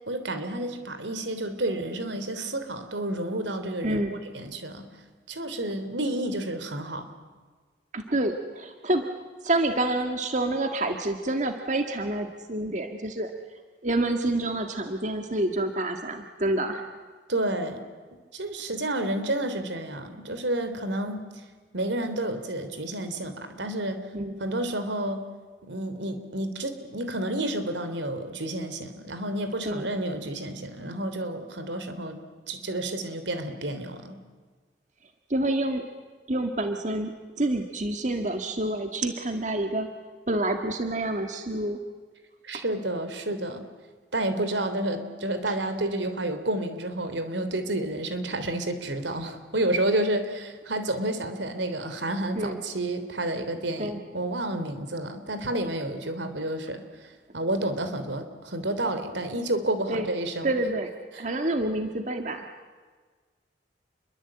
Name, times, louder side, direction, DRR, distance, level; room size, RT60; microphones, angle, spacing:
voice 1, 0.1-4.9 5.3-7.1 17.3-17.8 18.3-21.3 21.7-24.0 24.4-25.2 25.6-32.2 32.5-34.2 42.4-43.7 44.1-56.8 57.3-60.5 61.1-61.3, right 1 dB, 80° right, 9 dB, 3.4 m, -30 dB
voice 2, 7.9-9.1 9.4-13.3 13.8-16.9 24.1-24.3 29.6-29.9 35.3-35.8 36.3-37.1 37.4-39.9 40.3-41.8 52.4-52.6 53.8-54.0 59.9-60.1 60.4-60.9 61.2-62.5, right 1 dB, 40° right, 5 dB, 1.7 m, -28 dB
29.0 x 23.0 x 8.8 m, 1.4 s
head